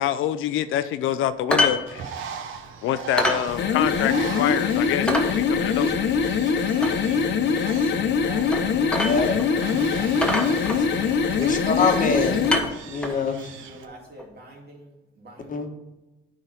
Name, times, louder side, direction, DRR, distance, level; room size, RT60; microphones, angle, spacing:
voice 1, 0.0-2.3 2.8-5.9, left 11 dB, 90° left, 13 dB, 0.5 m, -26 dB
sound 1, 1.5-1.8 2.1-2.2 2.6-2.7 3.2-3.4 3.9-4.0 4.4-4.5 5.1-5.3 6.8-7.0 8.5-8.6 8.9-9.5 9.7-9.8 10.2-11.1 11.9-12.1 12.4-13.2 14.2-14.3, left 1 dB, 5° left, 1.2 m, -25 dB
Bird, 1.9-13.9, right 7 dB, 85° right, 0.8 m, -39 dB
sound 2, 3.5-12.7, left 6 dB, 60° left, 0.8 m, -23 dB
voice 2, 8.0-8.6 9.0-9.3 9.8-10.3 11.1-11.6 13.6-15.7, right 2 dB, 50° right, -1 dB, 2.5 m, -45 dB
voice 3, 9.0-9.3 10.8-10.9 11.4-12.4 12.9-13.5 15.5-15.7, left 4 dB, 40° left, 4 dB, 1.2 m, -24 dB
9.2 x 3.9 x 5.7 m, 1.0 s
cardioid pair, 90°, 20 cm